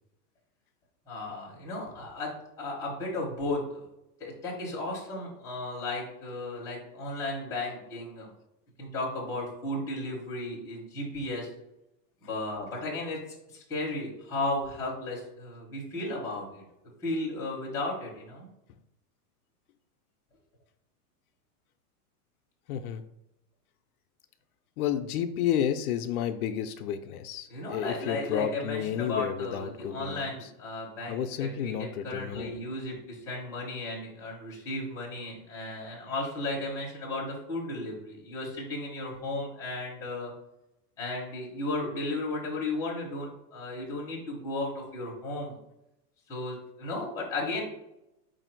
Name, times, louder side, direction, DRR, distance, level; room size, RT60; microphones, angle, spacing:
voice 1, 1.1-2.3 2.6-3.8 4.2-8.3 8.8-11.5 12.2-13.2 13.5-16.6 17.0-18.5 27.5-40.3 41.0-45.5 46.3-47.6, left 2 dB, 5° left, -4 dB, 0.9 m, -34 dB
voice 2, 22.7-23.0 24.8-30.5 31.1-32.6, left 9 dB, 70° left, 8 dB, 0.5 m, -31 dB
4.7 x 2.5 x 4.4 m, 0.88 s
supercardioid pair, 175°, 46 cm